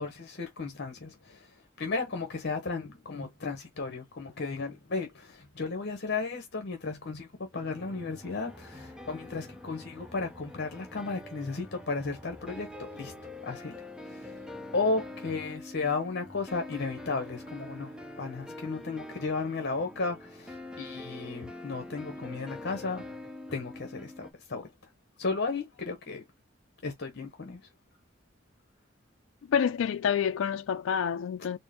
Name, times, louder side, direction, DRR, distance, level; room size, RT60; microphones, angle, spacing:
voice 1, 0.0-13.1 13.4-14.3 14.7-23.1 23.5-24.7 25.2-26.2 26.8-27.6, left 4 dB, 60° left, 0.9 m, -34 dB
sound 1, 7.5-24.3, left 1 dB, 5° right, 0.7 m, -45 dB
voice 2, 29.5-31.6, left 7 dB, 90° left, 0.3 m, -28 dB
4.3 x 2.0 x 3.5 m
head